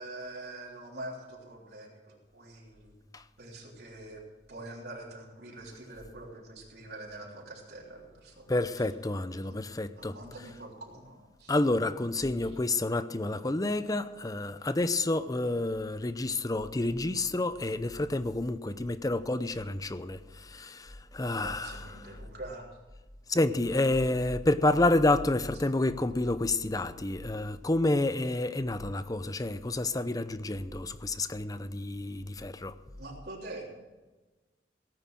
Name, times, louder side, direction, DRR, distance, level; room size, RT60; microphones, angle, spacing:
voice 1, 0.0-3.0 3.4-4.2 4.5-8.8 9.3-9.6 10.0-11.6 12.4-12.5 21.4-22.6 33.0-33.7, right 2 dB, 65° right, 3.4 m, -45 dB
voice 2, 8.5-10.2 11.5-21.9 23.3-32.7, left 2 dB, 20° left, 0.7 m, -29 dB
17.5 x 9.2 x 6.2 m
head